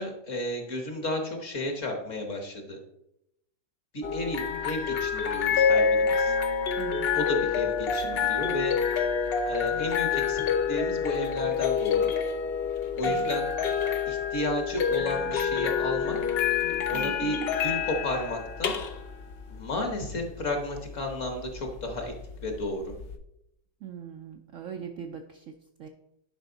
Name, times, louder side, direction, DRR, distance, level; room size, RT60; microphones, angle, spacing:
voice 1, 0.0-2.8 3.9-6.3 7.1-8.8 9.5-10.4 10.7-12.1 12.9-13.5 14.1-16.2 16.9-18.8 19.5-22.1 22.4-22.8, left 1 dB, 50° left, 4 dB, 1.6 m, -32 dB
sound 1, 4.0-23.2, left 6 dB, 65° left, 0.6 m, -28 dB
voice 2, 6.8-7.1 13.0-13.4 16.9-17.4 23.8-25.9, right 8 dB, 70° right, 5 dB, 0.8 m, -41 dB
10.5 x 5.4 x 3.9 m, 0.81 s
omnidirectional pair, 1.9 m